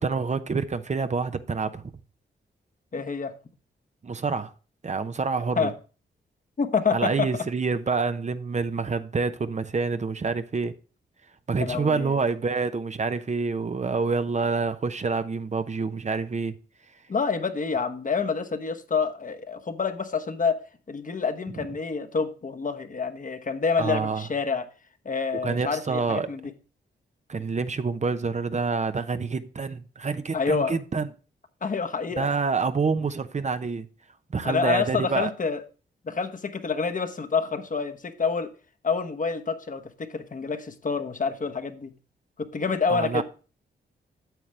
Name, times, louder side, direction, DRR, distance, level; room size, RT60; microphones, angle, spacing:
voice 1, 0.0-1.9 4.0-4.5 4.8-5.7 6.9-10.7 11.5-16.5 21.5-21.7 23.8-24.2 25.4-26.3 27.3-31.1 32.2-33.9 34.3-35.3 42.9-43.2, right 4 dB, 35° right, 0.8 m, -27 dB
voice 2, 2.9-3.3 5.6-5.7 6.6-7.3 11.6-12.2 17.1-20.6 20.9-24.6 25.0-26.4 30.3-30.7 31.6-32.3 34.4-35.6 36.1-38.5 38.8-41.9 42.4-43.2, left 5 dB, 45° left, 1.1 m, -27 dB
9.2 x 7.3 x 3.2 m
cardioid pair, 55°, 19 cm